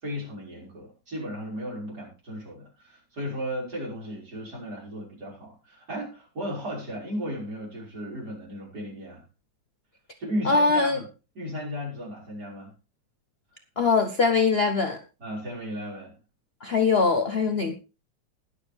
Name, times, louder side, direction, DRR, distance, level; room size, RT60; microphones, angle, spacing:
voice 1, 0.0-9.2 10.2-11.0 11.4-12.7 15.2-16.1, equal, 45° right, -4 dB, 6.0 m, -35 dB
voice 2, 10.4-11.0 13.8-15.0 16.6-17.7, left 4 dB, 75° left, 6 dB, 0.5 m, -22 dB
20.5 x 7.0 x 3.5 m, 0.32 s
omnidirectional pair, 2.4 m